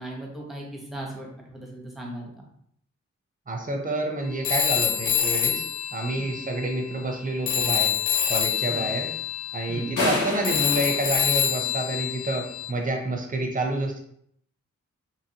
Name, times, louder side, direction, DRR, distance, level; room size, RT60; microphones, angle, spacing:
voice 1, 0.0-2.5 6.2-6.5 8.6-9.0 9.7-9.9, right 1 dB, ahead, -2 dB, 1.0 m, -38 dB
voice 2, 3.5-5.6 5.9-7.9 8.3-9.1 9.5-14.0, right 2 dB, 30° right, 2 dB, 0.7 m, -28 dB
Telephone, 4.4-7.2 7.5-12.7, left 9 dB, 75° left, 0.4 m, -26 dB
sound 1, 10.0-12.1, left 2 dB, 90° left, 1.0 m, -29 dB
2.8 x 2.6 x 2.8 m, 0.69 s
cardioid pair, 60°, 30 cm